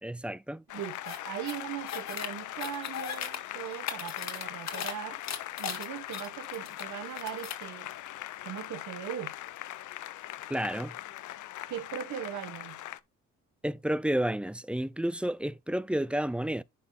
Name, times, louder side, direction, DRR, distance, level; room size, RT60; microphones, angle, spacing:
voice 1, 0.0-0.6 10.5-11.0 13.6-16.6, right 1 dB, 5° right, 0.3 m, -31 dB
Applause, 0.7-13.0, left 14 dB, 80° left, 0.7 m, -41 dB
voice 2, 0.7-5.2 5.6-7.9 8.4-9.3 11.7-12.8, right 10 dB, 75° right, 1.4 m, -39 dB
sound 1, 1.0-1.2 1.5-2.3 2.6-3.4 3.7-4.9 5.2-6.8 7.1-7.6, left 8 dB, 60° left, 1.9 m, -37 dB
11.0 x 4.0 x 4.2 m
cardioid pair, 90°, 30 cm